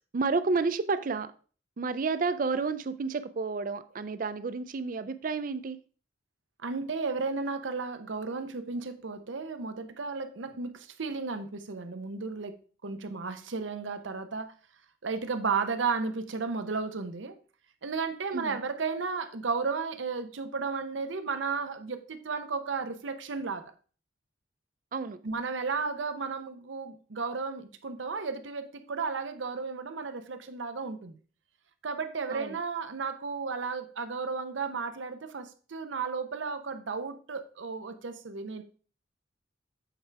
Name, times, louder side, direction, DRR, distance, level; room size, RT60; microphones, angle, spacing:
voice 1, 0.1-1.3 1.8-5.8 18.3-18.6 24.9-25.2 32.3-32.6, right 4 dB, 45° right, 0.4 m, -30 dB
voice 2, 6.6-14.5 15.0-17.4 17.8-23.7 25.2-31.2 31.8-38.6, right 4 dB, 75° right, 0.7 m, -34 dB
8.0 x 4.7 x 3.3 m
head